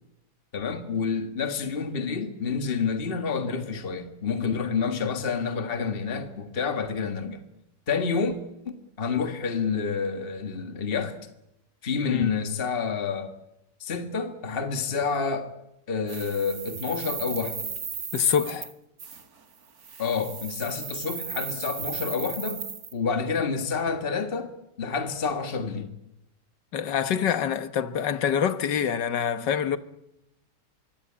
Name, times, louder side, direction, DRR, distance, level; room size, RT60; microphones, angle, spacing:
voice 1, 0.5-7.4 7.9-8.4 8.7-11.2 11.8-13.3 13.8-15.5 15.9-17.7 20.0-22.6 22.9-24.5 24.8-25.9, left 5 dB, 35° left, 1.9 m, -28 dB
sound 1, 16.1-18.7 19.0-19.2 19.8-22.9, right 6 dB, 60° right, 2.3 m, -36 dB
voice 2, 18.1-18.7 26.7-29.8, left 8 dB, 85° left, 1.9 m, -25 dB
25.5 x 23.0 x 8.7 m
omnidirectional pair, 1.8 m